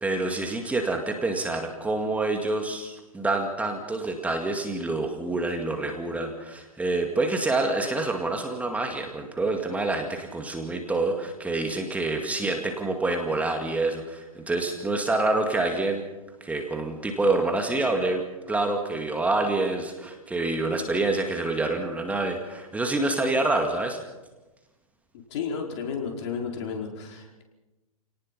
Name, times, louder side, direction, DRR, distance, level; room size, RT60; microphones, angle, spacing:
voice 1, 0.0-16.0 16.4-24.0, right 2 dB, 10° right, 4 dB, 2.1 m, -27 dB
voice 2, 25.3-27.4, left 6 dB, 50° left, 1 dB, 4.8 m, -32 dB
28.5 x 18.5 x 5.6 m, 1.1 s
hypercardioid pair, 120°, 18 cm